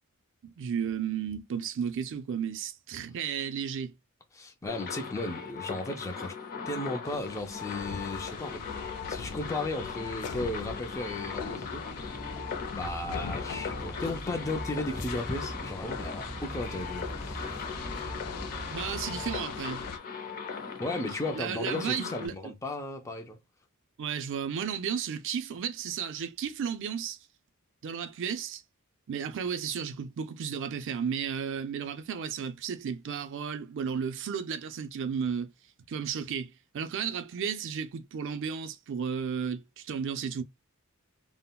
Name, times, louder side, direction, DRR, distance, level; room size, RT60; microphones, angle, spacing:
voice 1, 0.4-3.9 18.7-19.9 21.3-22.5 24.0-27.2 27.8-28.6 29.1-35.5 35.9-40.4, right 7 dB, 55° right, 0.4 m, -33 dB
voice 2, 4.3-6.3 6.7-8.6 9.1-12.1 12.7-17.6 20.8-23.4, left 2 dB, 15° left, 0.4 m, -35 dB
sound 1, 4.7-22.3, left 6 dB, 40° left, 0.7 m, -39 dB
sound 2, 7.0-20.0, left 5 dB, 80° left, 0.4 m, -43 dB
sound 3, 9.1-19.7, right 1 dB, 5° right, 0.9 m, -43 dB
3.6 x 2.1 x 2.2 m
head